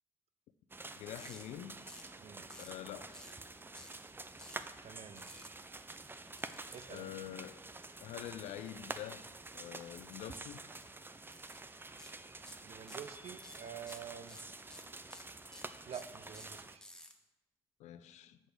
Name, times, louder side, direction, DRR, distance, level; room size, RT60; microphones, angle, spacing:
sound 1, 0.7-16.8, right 2 dB, 15° right, 0.5 m, -48 dB
voice 1, 1.0-1.8 2.6-3.2 6.9-7.6 8.0-9.3 9.5-10.6 17.8-18.4, left 11 dB, 70° left, 0.5 m, -46 dB
sound 2, 1.2-1.4 1.9-2.2 2.5-2.8 3.1-3.4 3.7-4.0 4.4-4.6 5.2-5.5 6.4-7.0 10.1-10.4 10.7-10.8 11.3-11.6 12.0-12.1 12.5-13.1 13.4-17.1, left 1 dB, 5° left, 1.1 m, -53 dB
voice 2, 4.8-5.5 6.7-7.1 12.6-14.4 15.9-16.8, right 8 dB, 55° right, 0.6 m, -48 dB
6.3 x 6.0 x 5.1 m
hypercardioid pair, 50°, 13 cm